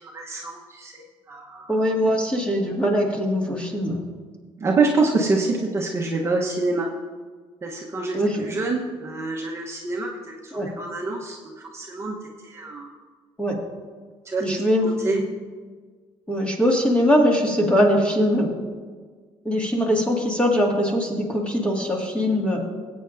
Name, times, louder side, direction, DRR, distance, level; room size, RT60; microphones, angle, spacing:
voice 1, 0.0-1.8 4.6-6.9 7.6-12.9 14.2-15.2, right 3 dB, 25° right, -1 dB, 1.0 m, -26 dB
voice 2, 1.7-4.0 8.1-8.5 10.5-10.7 13.4-13.6 14.4-15.2 16.3-18.5 19.5-22.6, equal, 10° left, -1 dB, 1.9 m, -21 dB
19.5 x 8.5 x 2.6 m, 1.5 s
cardioid pair, 140°, 10 cm